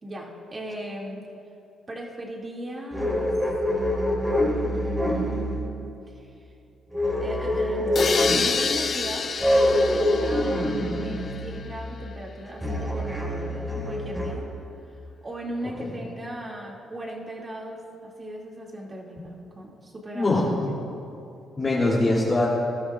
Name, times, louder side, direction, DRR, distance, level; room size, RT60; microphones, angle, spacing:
voice 1, 0.0-1.3 1.9-3.4 3.7-5.6 6.1-6.3 6.9-9.3 9.7-14.5 15.2-20.3, right 1 dB, 30° right, -2 dB, 2.4 m, -37 dB
sound 1, 2.9-5.7 6.9-8.6 9.4-11.7 12.6-14.3, left 1 dB, 10° right, 3.5 m, -25 dB
sound 2, 7.9-11.7, left 5 dB, 45° left, 0.5 m, -29 dB
voice 2, 20.1-20.7 21.6-22.5, left 2 dB, 30° left, -8 dB, 2.9 m, -23 dB
21.0 x 12.5 x 2.5 m, 2.7 s
cardioid pair, 90°, 0 cm